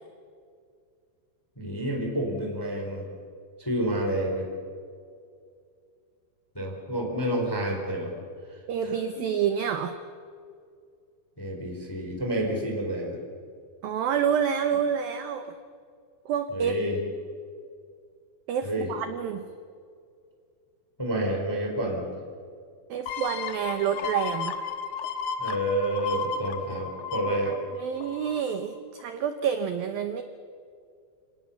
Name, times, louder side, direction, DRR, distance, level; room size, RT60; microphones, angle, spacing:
voice 1, 1.6-3.1 3.6-4.5 6.5-8.1 8.8-9.2 11.4-13.2 16.5-17.0 18.6-18.9 21.0-22.1 25.4-27.6, right 1 dB, 5° left, 1 dB, 3.5 m, -29 dB
voice 2, 8.7-10.0 13.8-15.6 16.3-16.7 18.5-19.4 22.9-24.5 27.8-30.2, right 8 dB, 80° right, 9 dB, 2.1 m, -28 dB
sound 1, 23.1-28.5 29.0-29.1, left 6 dB, 75° left, 1.8 m, -34 dB
29.5 x 18.5 x 7.2 m, 2.3 s
omnidirectional pair, 5.5 m